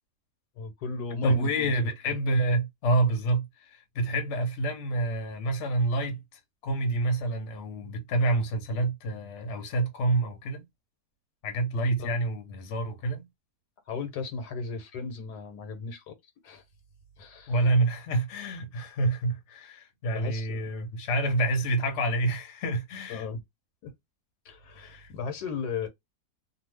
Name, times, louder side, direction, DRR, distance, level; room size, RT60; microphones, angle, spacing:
voice 1, 0.6-1.8 12.0-12.2 13.9-16.1 16.4-16.6 17.2-17.6 20.1-20.7 23.1-23.4 23.8-23.9 24.4-25.9, left 5 dB, 80° left, 1.4 m, -36 dB
voice 2, 1.2-6.2 6.6-10.6 11.4-13.2 17.5-23.2 24.8-25.1, right 2 dB, 55° left, 1.0 m, -28 dB
2.7 x 2.3 x 3.2 m
omnidirectional pair, 1.7 m